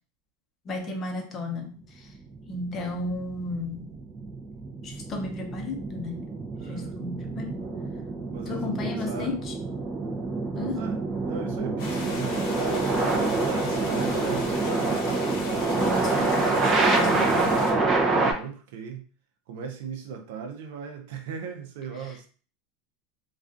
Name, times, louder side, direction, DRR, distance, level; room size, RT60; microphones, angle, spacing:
voice 1, 0.7-2.1 2.5-3.9 4.8-6.3 6.6-7.7 8.5-9.5 10.5-10.8 15.8-17.7, left 2 dB, 30° left, 0.7 m, -34 dB
sound 1, 2.2-18.3, right 3 dB, 25° right, 0.5 m, -27 dB
voice 2, 6.6-7.0 8.3-9.4 10.7-15.3 18.1-19.1 19.5-22.3, right 6 dB, 75° right, 0.5 m, -38 dB
sound 2, 11.8-17.7, left 2 dB, 60° left, 1.0 m, -36 dB
2.3 x 2.3 x 2.5 m
supercardioid pair, 125°, 0 cm